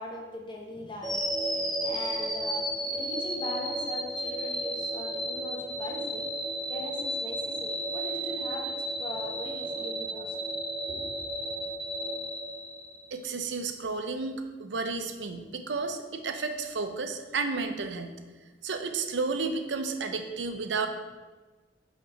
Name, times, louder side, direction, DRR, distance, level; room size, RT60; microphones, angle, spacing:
voice 1, 0.0-6.3 6.7-10.5 10.9-11.1, left 1 dB, 25° left, 0 dB, 1.1 m, -40 dB
sound 1, 1.0-13.2, right 1 dB, ahead, 0.7 m, -33 dB
voice 2, 13.1-18.1 18.6-20.9, right 4 dB, 90° right, 6 dB, 0.7 m, -32 dB
5.6 x 4.5 x 5.7 m, 1.3 s
head